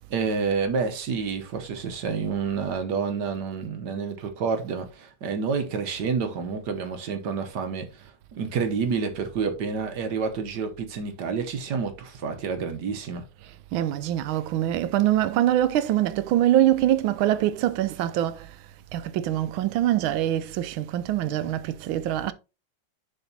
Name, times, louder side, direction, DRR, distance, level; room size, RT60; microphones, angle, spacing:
voice 1, 0.1-13.2, right 5 dB, 65° right, 1.4 m, -29 dB
voice 2, 13.7-18.6 18.9-22.3, right 12 dB, 90° right, 1.4 m, -24 dB
10.5 x 4.0 x 2.7 m
omnidirectional pair, 2.1 m